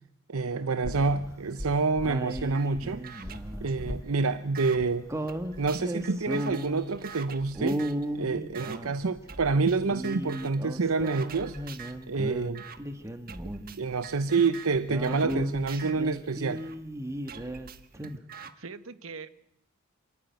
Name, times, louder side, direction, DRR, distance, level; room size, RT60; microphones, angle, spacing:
voice 1, 0.3-3.2 3.6-5.0 5.6-7.8 8.1-11.6 12.1-12.6 13.8-16.6, right 4 dB, 90° right, 11 dB, 0.8 m, -27 dB
sound 1, 0.5-7.2, left 1 dB, 20° left, 0.8 m, -43 dB
sound 2, 1.2-1.7 2.0-3.8 5.1-7.0 7.5-9.3 9.8-12.5 12.8-14.0 14.3-14.4 14.7-17.7 17.9-18.2, equal, 15° right, 1.3 m, -35 dB
sound 3, 2.5-2.7 3.0-4.8 5.3-8.1 8.5-8.8 9.3-9.8 10.0-10.6 11.0-12.0 12.5-12.8 13.3-16.8 17.3-18.5, right 5 dB, 45° right, 1.2 m, -45 dB
voice 2, 18.6-19.3, right 4 dB, 75° right, 12 dB, 1.1 m, -42 dB
27.0 x 13.5 x 9.3 m, 0.82 s
head